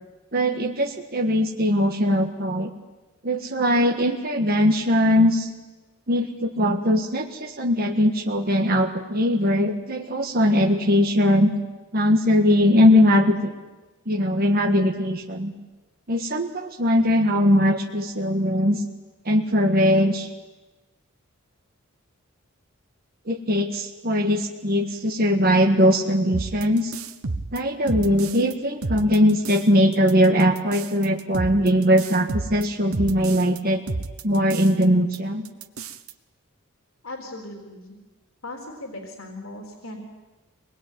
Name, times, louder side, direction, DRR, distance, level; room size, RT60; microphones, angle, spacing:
voice 1, 0.3-2.7 3.2-5.5 6.1-11.5 11.9-13.5 14.1-15.5 16.1-18.8 19.2-20.3 23.3-26.9 27.5-33.8 34.2-35.4, equal, 45° right, 3 dB, 1.6 m, -20 dB
sound 1, 26.3-28.5 28.8-29.7 29.9-33.6 33.9-34.8 35.1-35.2 35.4-36.1, right 3 dB, 90° right, 1.2 m, -32 dB
voice 2, 37.0-37.9 38.4-40.0, left 2 dB, 75° left, 2 dB, 3.8 m, -38 dB
24.5 x 20.0 x 9.4 m, 1.2 s
head